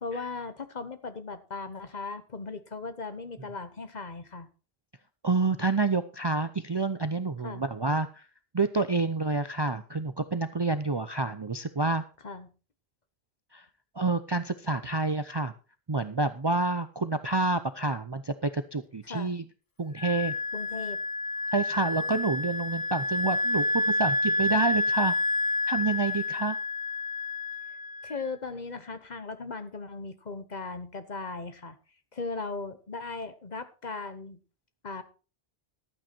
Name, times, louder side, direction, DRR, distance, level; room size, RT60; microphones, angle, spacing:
voice 1, 0.0-4.5 7.4-7.7 12.2-12.5 19.1-19.3 20.5-21.0 27.7-31.8 32.1-34.4 34.8-35.0, left 3 dB, 45° left, 11 dB, 1.2 m, -38 dB
voice 2, 5.2-8.2 8.5-12.0 13.5-13.7 14.0-15.5 15.9-19.4 19.8-20.3 21.5-25.1 25.7-26.6, right 3 dB, 30° right, 11 dB, 0.5 m, -28 dB
Wind instrument woodwind instrument, 20.0-28.3, left 2 dB, 30° left, 0.5 m, -29 dB
13.0 x 8.9 x 4.4 m, 0.34 s
omnidirectional pair, 1.0 m